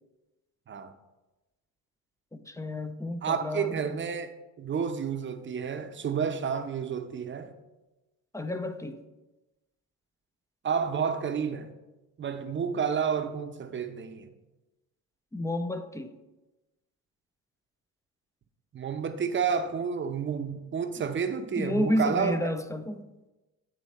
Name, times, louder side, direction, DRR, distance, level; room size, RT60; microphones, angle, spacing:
voice 1, 2.3-4.0 8.3-9.0 15.3-16.1 21.6-23.1, left 1 dB, 10° left, 0.4 m, -31 dB
voice 2, 3.2-7.5 10.6-11.7 12.2-14.3 18.7-22.4, right 6 dB, 25° right, 0.7 m, -30 dB
8.7 x 3.1 x 4.1 m
hypercardioid pair, 70°, 43 cm